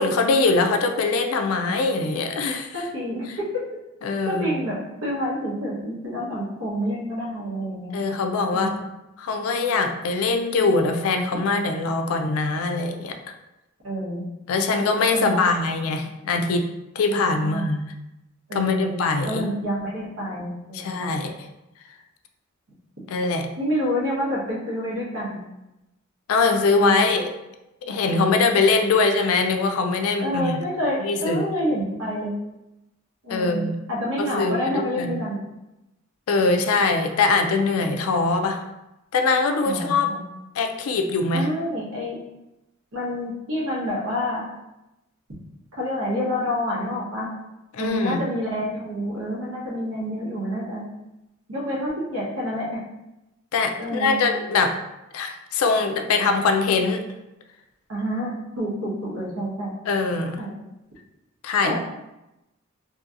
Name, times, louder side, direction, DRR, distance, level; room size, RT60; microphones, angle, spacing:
voice 1, 0.0-2.7 4.0-4.6 7.9-8.7 9.2-13.2 14.5-16.6 17.0-17.9 18.5-19.5 20.7-21.3 23.1-23.5 26.3-27.3 27.8-30.6 31.0-31.5 33.3-33.8 34.2-35.1 36.3-38.6 39.1-40.1 40.6-41.5 47.7-48.2 53.5-54.8 55.1-57.0 59.9-60.4 61.4-61.8, left 3 dB, 80° left, 6 dB, 0.3 m, -22 dB
voice 2, 2.7-3.6 4.2-4.7 5.0-8.0 8.5-8.7 13.8-14.2 15.1-15.4 17.4-17.7 18.5-19.0 19.2-21.2 23.6-25.4 26.8-27.1 30.2-32.3 33.2-35.4 39.6-40.2 41.3-42.2 42.9-44.4 45.7-47.3 47.8-50.8 51.5-52.8 53.8-54.2 57.9-59.7 60.4-60.5 61.6-61.8, equal, 80° right, -5 dB, 1.0 m, -28 dB
2.9 x 2.7 x 2.4 m, 0.95 s
head